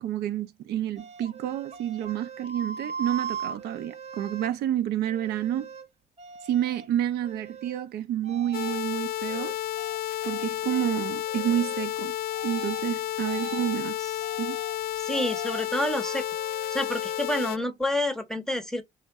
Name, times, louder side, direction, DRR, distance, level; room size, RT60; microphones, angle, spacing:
voice 1, 0.0-5.7 6.4-9.5 10.2-12.1 12.4-14.0 14.4-14.6, right 11 dB, 75° right, 0.5 m, -29 dB
sound 1, 1.0-4.5 5.1-5.9 6.2-6.9 7.2-7.9 8.2-8.8 9.2-10.4 10.7-10.9 11.2-11.9 12.3-12.8 13.2-13.8 14.2-14.8 15.1-15.7 16.0-17.7, right 6 dB, 40° right, 0.8 m, -40 dB
sound 2, 8.5-17.6, left 13 dB, 60° left, 0.4 m, -31 dB
voice 2, 15.0-16.3 16.7-18.8, left 1 dB, 5° left, 0.7 m, -28 dB
3.1 x 2.8 x 3.5 m
cardioid pair, 110°, 17 cm